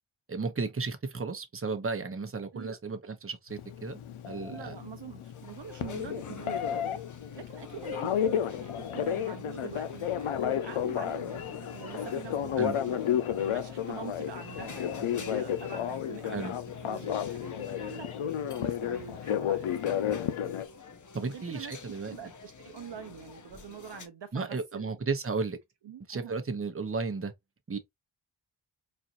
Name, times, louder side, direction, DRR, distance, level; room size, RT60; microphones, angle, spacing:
voice 1, 0.3-4.0 4.3-4.7 12.6-12.8 16.3-16.5 21.1-22.1 24.3-25.6 26.1-27.3 27.7-27.8, right 4 dB, 25° right, 0.8 m, -34 dB
Telephone, 3.5-20.6, left 9 dB, 85° left, 0.6 m, -32 dB
voice 2, 4.5-7.0 7.4-18.1 18.5-20.0 21.2-25.0 25.8-26.3, right 8 dB, 60° right, 0.6 m, -45 dB
sound 1, 5.3-24.1, left 5 dB, 40° left, 0.7 m, -47 dB
4.2 x 2.4 x 2.5 m
wide cardioid pair, 60°, 48 cm